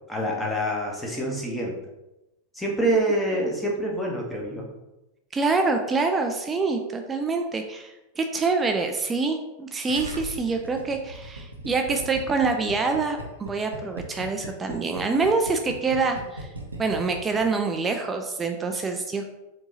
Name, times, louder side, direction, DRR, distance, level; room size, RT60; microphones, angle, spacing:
voice 1, 0.1-1.8 2.5-4.7, right 1 dB, 5° left, -2 dB, 1.0 m, -26 dB
voice 2, 5.3-16.5 16.8-19.3, right 4 dB, 15° right, 4 dB, 0.3 m, -26 dB
Gurgling, 9.9-17.7, right 2 dB, 80° right, 0.6 m, -38 dB
4.5 x 2.8 x 2.7 m, 0.98 s
figure-of-eight pair, 90°, 0 cm